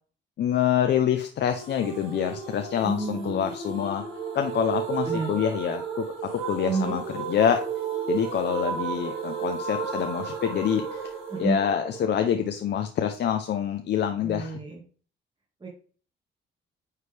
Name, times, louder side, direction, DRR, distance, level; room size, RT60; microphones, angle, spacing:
voice 1, 0.4-4.0 4.3-6.0 6.4-7.0 7.3-7.6 8.1-11.1 11.4-14.6, left 9 dB, 60° left, 7 dB, 0.6 m, -26 dB
sound 1, 1.6-12.5, right 6 dB, 90° right, 1.9 m, -33 dB
voice 2, 2.8-3.5 5.1-5.3 6.7-7.0 11.3-11.6 14.2-14.8 15.6-15.7, right 3 dB, 25° right, 0 dB, 1.5 m, -29 dB
9.1 x 3.3 x 3.3 m, 0.42 s
cardioid pair, 90°, 20 cm